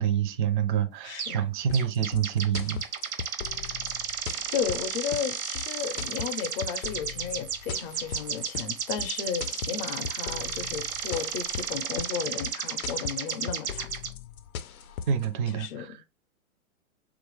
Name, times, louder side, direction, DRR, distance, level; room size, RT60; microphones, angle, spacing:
voice 1, 0.0-2.8 15.1-16.0, right 8 dB, 35° right, 0.4 m, -27 dB
voice 2, 1.0-1.4 4.5-13.9 15.5-16.0, left 7 dB, 45° left, 0.6 m, -34 dB
sound 1, 1.2-1.5 1.7-14.1, right 7 dB, 80° right, 0.8 m, -33 dB
sound 2, 1.7-15.3, left 8 dB, 85° left, 0.6 m, -38 dB
3.1 x 2.4 x 3.1 m
hypercardioid pair, 130°, 42 cm